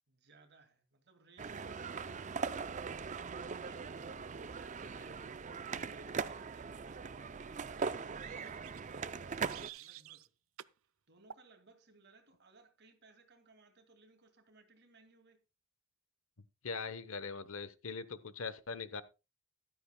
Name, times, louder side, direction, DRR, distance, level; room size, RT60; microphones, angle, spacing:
voice 1, 0.1-2.5 3.2-5.2 5.6-10.3 11.1-15.4, right 3 dB, 55° right, 2.3 m, -63 dB
sound 1, 1.4-9.7, right 5 dB, 35° right, 0.5 m, -40 dB
sound 2, 8.4-10.3 10.6-10.8 11.3-11.5, right 11 dB, 85° right, 0.5 m, -52 dB
voice 2, 16.6-19.0, left 4 dB, 85° left, 1.0 m, -41 dB
14.5 x 12.0 x 2.2 m
head